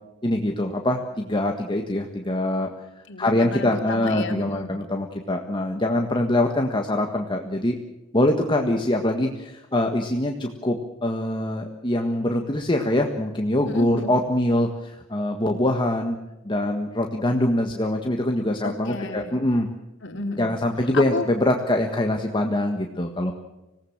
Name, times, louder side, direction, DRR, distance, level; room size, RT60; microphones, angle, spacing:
voice 1, 0.2-2.7 3.2-7.8 8.1-16.2 16.4-19.7 20.4-23.3, left 1 dB, 25° left, 3 dB, 1.6 m, -24 dB
voice 2, 3.1-4.7 13.6-14.1 18.6-19.3 20.0-20.5 20.9-21.2, left 3 dB, 65° left, 5 dB, 3.3 m, -31 dB
26.0 x 18.0 x 7.4 m, 0.99 s
head